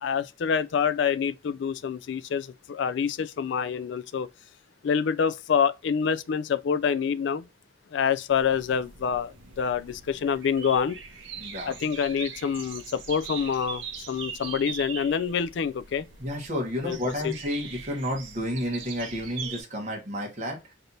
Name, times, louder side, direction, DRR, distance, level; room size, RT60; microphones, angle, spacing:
voice 1, 0.0-4.3 4.8-7.4 7.9-11.0 11.7-16.1 16.8-17.0 17.2-17.3, left 7 dB, 65° left, 0.3 m, -27 dB
sound 1, 8.3-19.6, right 6 dB, 75° right, 0.8 m, -41 dB
voice 2, 11.4-11.7 16.2-20.6, equal, 40° right, 1.2 m, -31 dB
3.3 x 2.8 x 3.9 m
head